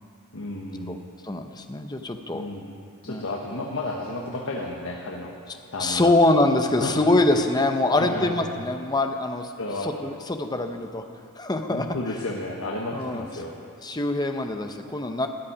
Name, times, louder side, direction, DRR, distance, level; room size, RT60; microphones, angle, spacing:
voice 1, 0.3-0.9 2.3-2.6 3.0-5.3 5.7-6.1 6.8-7.0 7.9-8.4 9.6-9.9 11.7-13.5, left 2 dB, 65° left, -1 dB, 1.3 m, -32 dB
voice 2, 1.3-2.4 3.0-3.2 5.8-9.5 9.8-11.0 11.4-11.9 12.9-13.2 13.8-15.3, left 2 dB, 20° left, 6 dB, 0.8 m, -24 dB
13.5 x 7.4 x 10.0 m, 2.4 s
head